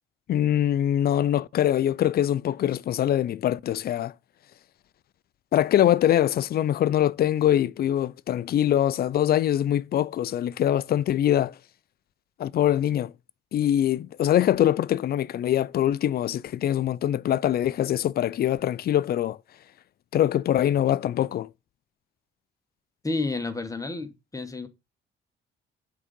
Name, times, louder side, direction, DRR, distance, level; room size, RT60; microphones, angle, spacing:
voice 1, 0.3-4.1 5.5-11.5 12.4-13.1 13.5-19.4 20.1-21.5, left 11 dB, 50° left, 0.4 m, -23 dB
voice 2, 23.0-24.7, left 3 dB, 15° left, 1.1 m, -30 dB
8.1 x 3.8 x 5.2 m
cardioid pair, 90°, 20 cm